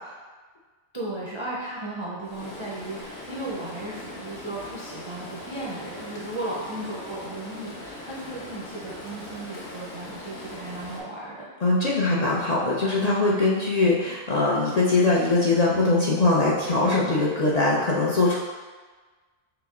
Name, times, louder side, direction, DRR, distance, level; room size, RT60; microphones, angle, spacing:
voice 1, 0.9-11.5, right 1 dB, 40° right, -6 dB, 0.4 m, -35 dB
Stream, 2.2-11.0, left 1 dB, 65° left, 1.2 m, -40 dB
voice 2, 11.6-18.4, left 2 dB, 50° left, -5 dB, 0.5 m, -22 dB
5.8 x 2.0 x 3.6 m, 1.4 s
omnidirectional pair, 1.2 m